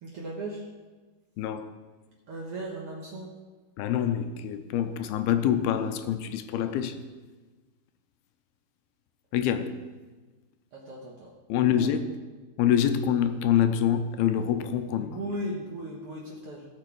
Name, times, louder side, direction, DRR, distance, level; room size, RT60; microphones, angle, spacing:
voice 1, 0.0-0.6 2.3-3.3 10.7-11.3 11.6-12.0 14.9-16.7, right 1 dB, 85° right, 1.2 m, -37 dB
voice 2, 1.4-1.7 3.8-7.0 9.3-9.8 11.5-12.1 12.6-15.1, left 9 dB, 85° left, 2.5 m, -26 dB
16.5 x 6.2 x 4.6 m
omnidirectional pair, 4.5 m